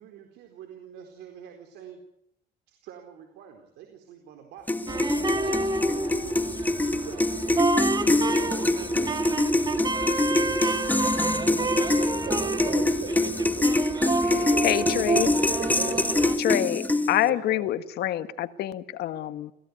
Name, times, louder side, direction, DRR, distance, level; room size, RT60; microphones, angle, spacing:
voice 1, 0.0-2.0 2.7-6.4 6.8-9.3 10.3-10.6 15.4-15.9, right 9 dB, 85° right, 5 dB, 4.3 m, -47 dB
sound 1, 4.7-17.3, left 2 dB, 10° left, 1.3 m, -25 dB
sound 2, 4.9-16.4, right 3 dB, 25° right, 2.1 m, -29 dB
voice 2, 11.9-14.6 15.2-16.2 17.2-17.7, right 5 dB, 55° right, 4 dB, 6.2 m, -38 dB
voice 3, 14.6-15.3 16.4-19.5, left 13 dB, 75° left, 12 dB, 1.7 m, -26 dB
29.5 x 17.5 x 9.7 m, 0.81 s
cardioid pair, 110°, 17 cm